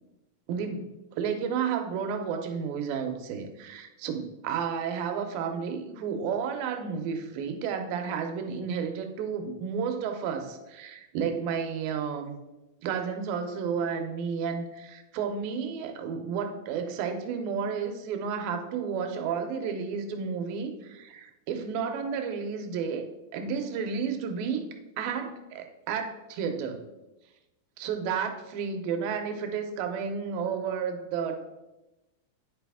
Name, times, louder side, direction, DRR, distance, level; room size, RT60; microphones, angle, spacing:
voice 1, 0.5-12.3 12.8-23.1 23.3-24.6 25.0-26.8 27.8-31.4, right 6 dB, 90° right, 5 dB, 2.5 m, -32 dB
9.9 x 4.1 x 3.5 m, 0.99 s
omnidirectional pair, 4.1 m